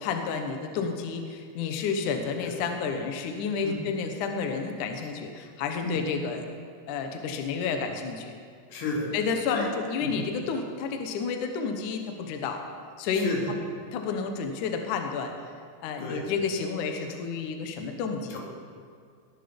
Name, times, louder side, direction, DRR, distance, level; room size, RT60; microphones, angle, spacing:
voice 1, 0.0-6.5 6.9-8.3 9.1-12.6 13.0-13.3 13.9-15.3 15.8-18.4, left 5 dB, 65° left, 5 dB, 2.2 m, -30 dB
voice 2, 8.7-9.1 9.5-9.7 10.0-10.2 13.1-13.5 16.0-16.3 18.3-18.4, left 3 dB, 85° left, -1 dB, 4.5 m, -32 dB
20.0 x 11.0 x 5.3 m, 2.3 s
omnidirectional pair, 4.7 m